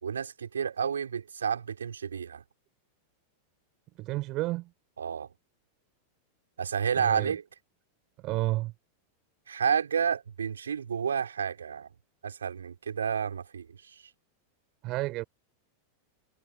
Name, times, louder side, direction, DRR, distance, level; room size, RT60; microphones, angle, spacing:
voice 1, 0.0-2.4 5.0-5.3 6.6-7.4 9.5-11.9 12.2-13.7 14.0-14.1, right 7 dB, 70° right, 3.7 m, -30 dB
voice 2, 4.0-4.7 6.9-7.3 8.2-8.7 14.8-15.2, right 19 dB, 40° right, 5.6 m, -31 dB
figure-of-eight pair, 90°, 0 cm